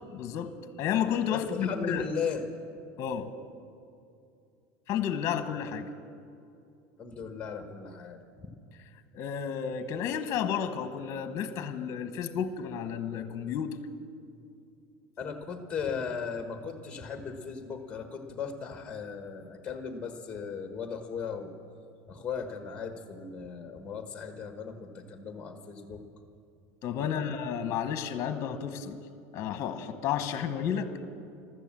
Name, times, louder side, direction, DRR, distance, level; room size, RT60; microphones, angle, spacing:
voice 1, 0.1-2.1 3.0-3.3 4.9-5.9 9.1-13.8 26.8-29.0 29.3-30.9, left 8 dB, 40° left, 10 dB, 1.1 m, -32 dB
voice 2, 1.3-2.4 7.0-8.5 15.2-21.5 22.1-26.0 27.0-27.3, left 6 dB, 15° left, 6 dB, 1.3 m, -37 dB
14.5 x 12.5 x 7.4 m, 2.5 s
supercardioid pair, 135°, 8 cm